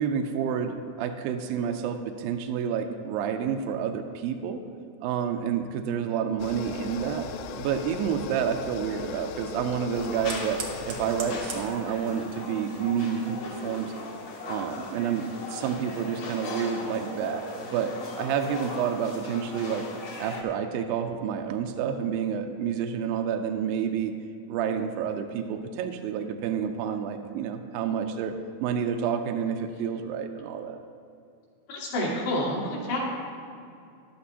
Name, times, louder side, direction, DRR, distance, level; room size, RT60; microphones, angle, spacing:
voice 1, 0.0-4.6 5.0-14.0 14.5-19.9 20.2-24.1 24.5-30.8, right 7 dB, 80° right, 5 dB, 2.2 m, -29 dB
sound 1, 6.4-11.7, left 8 dB, 90° left, 2.6 m, -39 dB
Fire, 7.3-14.6, right 4 dB, 60° right, 1.4 m, -45 dB
sound 2, 9.9-20.4, left 2 dB, 55° left, 1.9 m, -38 dB
voice 2, 31.7-33.0, left 1 dB, 70° left, -5 dB, 4.0 m, -28 dB
14.5 x 11.5 x 2.8 m, 2.4 s
omnidirectional pair, 4.6 m